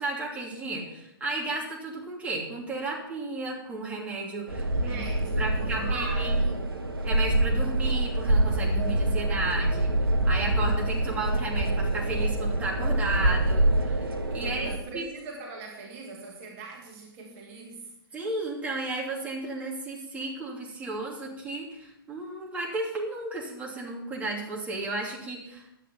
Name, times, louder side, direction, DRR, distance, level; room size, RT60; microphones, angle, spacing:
voice 1, 0.0-5.0 5.4-6.5 7.0-9.9 10.2-15.1 18.1-25.7, right 2 dB, 10° right, -3 dB, 2.9 m, -34 dB
sound 1, 4.5-14.8, right 1 dB, 80° right, 1.5 m, -25 dB
voice 2, 4.7-6.7 14.4-17.9, right 3 dB, 35° right, 0 dB, 2.5 m, -41 dB
11.5 x 9.3 x 5.7 m, 0.83 s
figure-of-eight pair, 120°, 12 cm